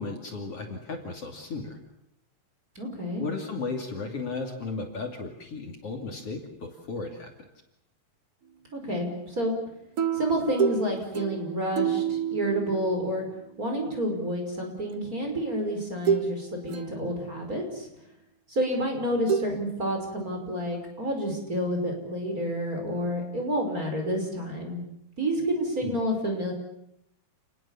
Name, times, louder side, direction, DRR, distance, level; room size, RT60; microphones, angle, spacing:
voice 1, 0.0-1.8 3.2-7.3 25.8-26.0, left 3 dB, 50° left, 2 dB, 3.6 m, -35 dB
voice 2, 2.8-3.3 8.7-9.5 10.1-13.3 13.6-17.9 18.5-24.8 25.2-26.5, equal, 25° right, 2 dB, 5.7 m, -29 dB
sound 1, 10.0-13.6 14.9-15.1 16.1-16.4 16.7-17.5 19.3-19.4, right 8 dB, 55° right, 1.9 m, -29 dB
29.5 x 20.5 x 7.3 m, 0.78 s
omnidirectional pair, 3.6 m